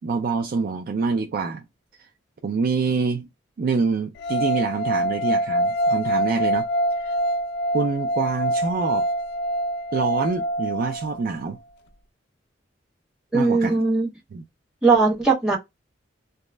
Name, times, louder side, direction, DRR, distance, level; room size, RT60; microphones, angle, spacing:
voice 1, 0.0-1.6 2.4-3.3 3.6-6.7 7.0-7.2 7.7-9.1 9.9-11.6 13.3-13.8 14.3-14.4, right 4 dB, 50° right, 0.3 m, -26 dB
sound 1, 4.2-11.3, equal, 60° left, 0.3 m, -25 dB
voice 2, 13.3-14.1 14.8-15.6, right 3 dB, 5° right, 1.1 m, -19 dB
2.3 x 2.0 x 3.2 m
head